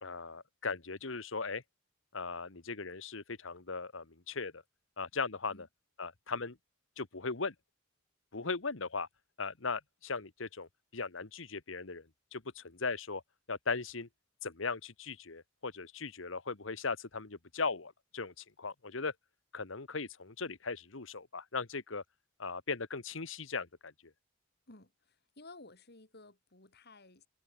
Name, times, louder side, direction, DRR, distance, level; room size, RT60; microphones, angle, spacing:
voice 1, 0.0-1.6 2.1-4.6 5.0-5.7 6.0-6.6 7.0-7.5 8.3-9.1 9.4-12.0 12.3-13.2 13.5-14.1 14.4-19.1 19.5-22.0 22.4-23.9, left 4 dB, 70° left, 1.5 m, -38 dB
voice 2, 24.7-27.3, left 2 dB, 55° left, 3.7 m, -55 dB
head